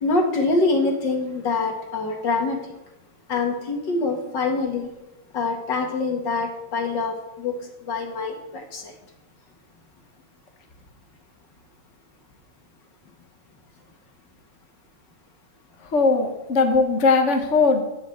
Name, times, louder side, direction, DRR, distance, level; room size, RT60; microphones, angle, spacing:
voice 1, 0.0-2.6 3.3-4.9 5.3-7.5 7.9-8.9, left 3 dB, 65° left, 2 dB, 2.5 m, -25 dB
voice 2, 15.8-17.8, left 4 dB, 40° left, 4 dB, 1.4 m, -19 dB
10.5 x 7.4 x 7.9 m, 0.93 s
omnidirectional pair, 2.1 m